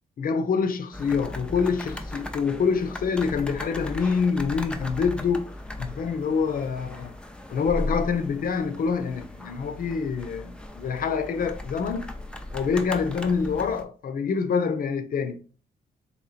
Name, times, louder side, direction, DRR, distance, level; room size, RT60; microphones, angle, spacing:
voice 1, 0.2-5.5 5.8-7.1 7.5-12.1 12.5-15.4, left 5 dB, 60° left, 0.6 m, -26 dB
sound 1, 0.9-13.8, left 1 dB, 5° left, 0.5 m, -37 dB
3.2 x 3.1 x 4.0 m
cardioid pair, 95°, 16 cm